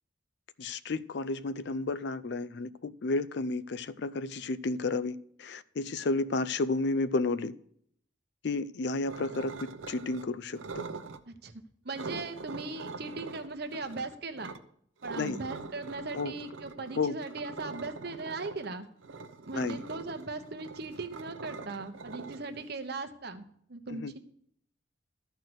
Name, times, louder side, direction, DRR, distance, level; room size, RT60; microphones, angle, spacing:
voice 1, 0.6-7.5 8.4-10.8 15.1-15.4 16.2-16.3 17.0-17.2 19.5-19.8 23.9-24.1, left 3 dB, 55° left, 0.4 m, -32 dB
sound 1, 9.1-10.3 10.5-11.2 11.9-14.6 15.0-23.1, right 4 dB, 80° right, 0.7 m, -43 dB
voice 2, 11.8-14.5 15.0-18.8 19.4-24.2, right 3 dB, 55° right, 1.0 m, -39 dB
13.0 x 4.6 x 7.9 m
head